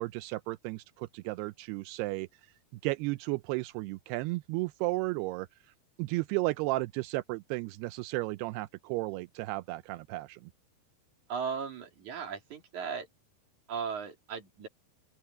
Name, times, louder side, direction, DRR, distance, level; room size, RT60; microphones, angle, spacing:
voice 1, 0.0-2.5 2.8-5.5 6.0-10.5, right 21 dB, 85° right, 2.6 m, -34 dB
voice 2, 11.3-13.1 13.7-14.7, right 6 dB, 50° right, 4.2 m, -37 dB
open air
omnidirectional pair, 4.7 m